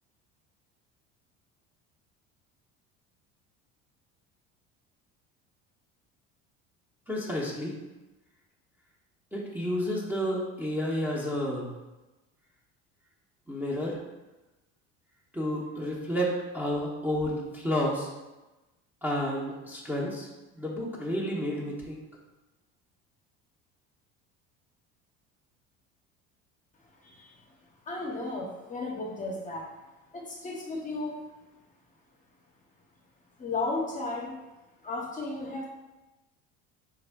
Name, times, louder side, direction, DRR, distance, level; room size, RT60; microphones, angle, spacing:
voice 1, 7.1-7.7 9.3-11.7 13.5-14.0 15.3-18.1 19.0-20.3 20.6-22.0, equal, 5° right, -4 dB, 0.7 m, -30 dB
voice 2, 27.0-27.4 27.8-29.7 30.1-31.2 33.4-34.4 34.8-35.7, left 2 dB, 25° left, -2 dB, 0.7 m, -34 dB
3.5 x 2.1 x 3.3 m, 1.1 s
supercardioid pair, 90°, 30 cm